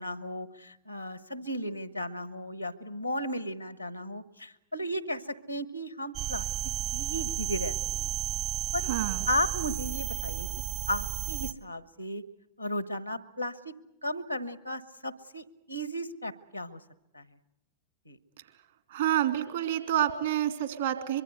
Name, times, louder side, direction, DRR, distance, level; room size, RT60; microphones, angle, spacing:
voice 1, 0.0-6.5 6.9-8.1 8.7-8.9 9.3-10.5 10.9-12.2 12.6-13.7 14.0-16.8 17.1-17.3 18.1-18.2, equal, 90° left, 15 dB, 1.1 m, -35 dB
sound 1, 6.1-11.5, right 12 dB, 45° right, 1.0 m, -33 dB
voice 2, 8.9-9.2 18.9-21.2, right 11 dB, 65° right, 9 dB, 2.5 m, -28 dB
24.0 x 23.0 x 8.0 m, 0.89 s
figure-of-eight pair, 90°, 0 cm